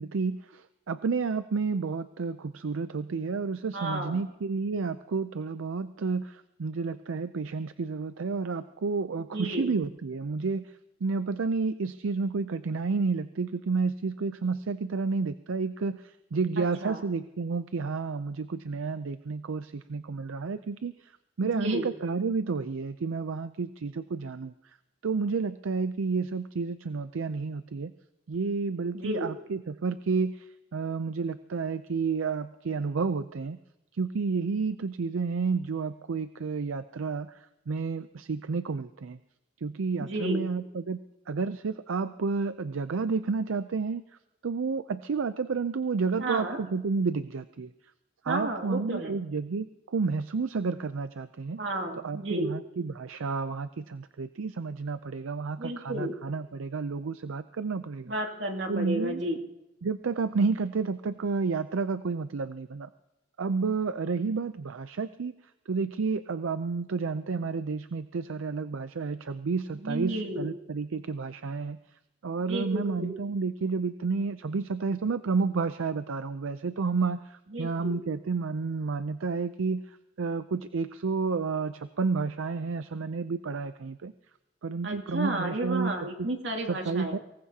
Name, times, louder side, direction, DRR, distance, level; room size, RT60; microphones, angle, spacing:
voice 1, 0.0-10.8 11.0-21.1 21.4-24.5 25.0-27.9 28.3-33.6 33.9-39.2 39.6-41.0 41.3-44.0 44.4-47.7 48.2-51.6 52.0-58.1 58.7-59.2 59.8-62.9 63.4-65.3 65.7-71.8 72.2-84.1 84.6-85.9 86.2-86.3 86.7-87.2, right 4 dB, 85° right, 12 dB, 0.5 m, -30 dB
voice 2, 3.7-4.2 9.3-9.7 16.6-17.0 21.4-21.9 28.9-29.3 40.0-40.5 46.2-46.6 48.3-49.2 51.6-52.5 55.6-56.1 58.1-59.4 69.8-70.5 72.5-73.1 77.5-78.0 84.8-87.2, right 1 dB, 65° right, 2 dB, 2.5 m, -32 dB
24.0 x 20.0 x 2.8 m, 0.93 s
head